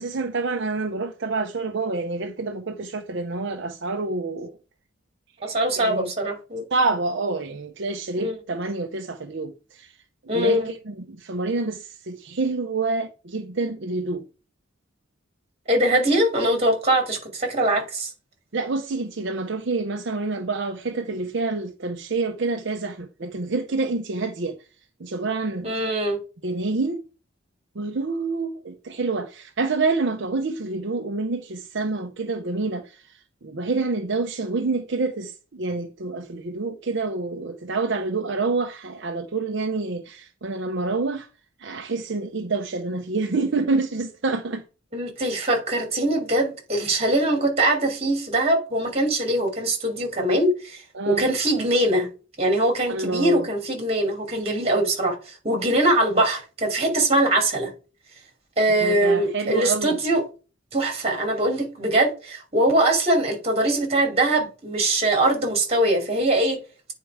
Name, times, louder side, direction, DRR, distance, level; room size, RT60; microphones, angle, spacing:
voice 1, 0.0-4.5 5.4-6.1 6.7-9.9 10.3-14.2 18.5-24.6 25.0-25.7 26.4-27.0 27.7-41.3 41.6-44.6 50.9-51.2 52.9-53.5 58.8-60.0, right 3 dB, 60° right, 0.7 m, -27 dB
voice 2, 5.4-6.6 8.2-8.4 10.3-10.7 15.7-18.1 25.6-26.2 44.9-52.1 52.4-57.7 58.6-60.2 60.7-66.6, right 1 dB, 30° right, 2.7 m, -22 dB
9.3 x 4.5 x 4.7 m
head